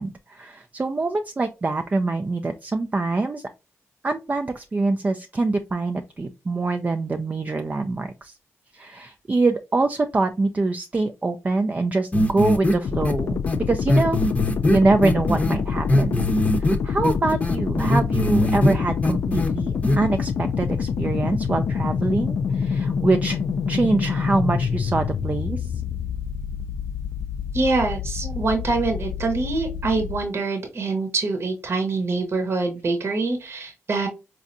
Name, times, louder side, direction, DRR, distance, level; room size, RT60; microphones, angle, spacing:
voice 1, 0.0-3.4 4.0-8.3 8.7-14.2 14.7-16.3 16.6-23.4 23.7-25.7 28.2-28.4, right 3 dB, 25° right, 0.4 m, -24 dB
sound 1, 12.1-12.7 13.0-13.1 13.5-13.6 13.9-15.5 15.9-16.7 17.0-18.7 19.0-19.5 19.8-20.0, left 1 dB, 25° left, 0.7 m, -20 dB
sound 2, 12.8-30.2, left 6 dB, 60° left, 0.3 m, -27 dB
voice 2, 27.5-34.1, right 3 dB, 50° right, 0.8 m, -25 dB
4.2 x 2.5 x 2.5 m
cardioid pair, 65°, 6 cm